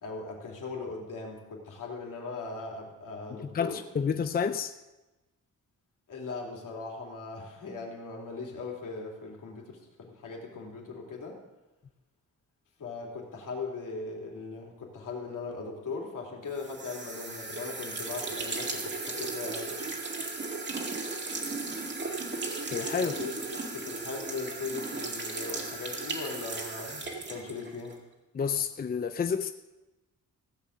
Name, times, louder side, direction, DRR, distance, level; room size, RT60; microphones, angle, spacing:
voice 1, 0.0-3.8 6.1-11.4 12.8-19.8 23.0-28.0, left 4 dB, 70° left, 0 dB, 3.2 m, -39 dB
voice 2, 3.5-4.7 22.7-23.1 28.3-29.5, left 6 dB, 30° left, 9 dB, 0.5 m, -29 dB
sound 1, 16.6-28.0, right 3 dB, 35° right, 2.1 m, -36 dB
15.5 x 7.5 x 6.7 m, 1.1 s
cardioid pair, 125°, 33 cm